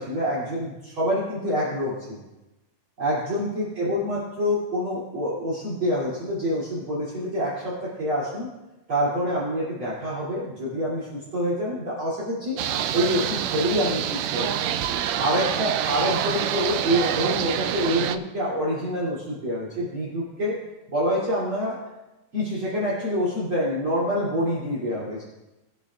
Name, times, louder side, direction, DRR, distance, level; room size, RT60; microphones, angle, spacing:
voice 1, 0.0-2.2 3.0-8.5 8.9-12.6 12.9-14.7 15.2-20.6 20.9-21.8 22.3-25.2, equal, 45° right, -8 dB, 3.6 m, -26 dB
sound 1, 12.6-18.2, right 10 dB, 80° right, 1.6 m, -26 dB
21.0 x 8.8 x 2.4 m, 1.0 s
omnidirectional pair, 3.4 m